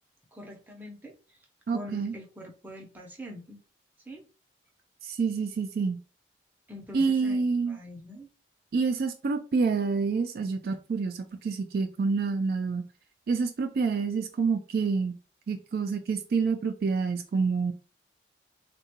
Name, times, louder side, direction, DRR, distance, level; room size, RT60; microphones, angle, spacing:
voice 1, 0.3-1.1 1.7-3.6 4.1-4.2 6.7-8.3, left 1 dB, 10° right, 0.5 m, -44 dB
voice 2, 1.7-2.1 5.0-6.0 6.9-7.8 8.7-12.8 13.3-15.2 15.5-17.7, right 4 dB, 55° right, 0.3 m, -27 dB
3.6 x 2.2 x 2.8 m
head